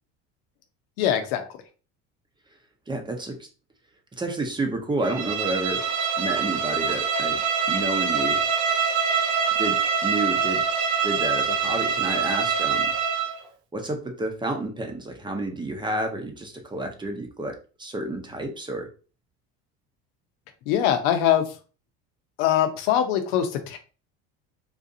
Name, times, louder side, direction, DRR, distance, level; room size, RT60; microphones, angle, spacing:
voice 1, 1.0-1.4 20.7-21.6 22.4-23.8, left 10 dB, 85° left, 7 dB, 0.7 m, -22 dB
voice 2, 2.9-3.5 4.2-5.8 6.2-7.4 7.7-8.4 9.6-10.6 11.0-12.9 13.7-18.9, right 2 dB, 15° right, 3 dB, 0.8 m, -30 dB
Bowed string instrument, 5.0-13.4, right 6 dB, 80° right, 0.7 m, -24 dB
3.8 x 2.5 x 2.7 m, 0.35 s
supercardioid pair, 105°, 30 cm